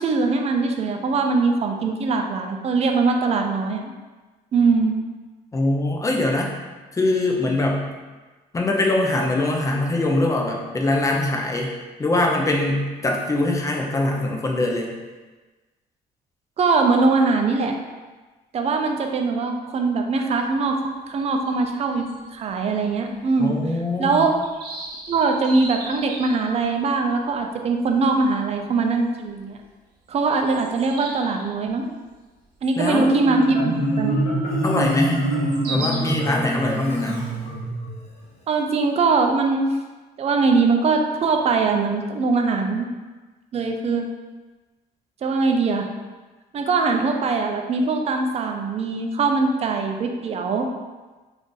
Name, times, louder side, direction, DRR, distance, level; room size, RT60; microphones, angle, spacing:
voice 1, 0.0-3.9 4.5-4.9 16.6-17.8 18.5-23.5 24.0-24.3 25.1-29.6 30.1-31.9 32.6-34.2 38.5-39.7 40.2-42.9 43.5-44.1 45.2-45.9 46.5-50.7, right 4 dB, 40° right, 4 dB, 0.4 m, -21 dB
voice 2, 5.5-6.5 6.9-7.8 8.5-11.7 12.0-14.9 23.4-24.3 32.8-33.2 34.6-35.2 35.7-37.3, left 2 dB, 20° left, 0 dB, 0.5 m, -22 dB
sound 1, 20.3-20.4 20.6-20.7 21.1-22.9 23.2-23.3 23.7-23.8 24.1-26.7 27.4-27.5 27.9-28.1 28.5-28.7 29.6-29.7 30.1-31.5 32.6-32.8 33.3-33.4 35.2-36.0, right 2 dB, 65° right, 0.7 m, -36 dB
Marimba xylophone, 32.9-38.0, right 1 dB, 35° left, 0.9 m, -25 dB
2.5 x 2.5 x 3.7 m, 1.3 s
cardioid pair, 110°, 17 cm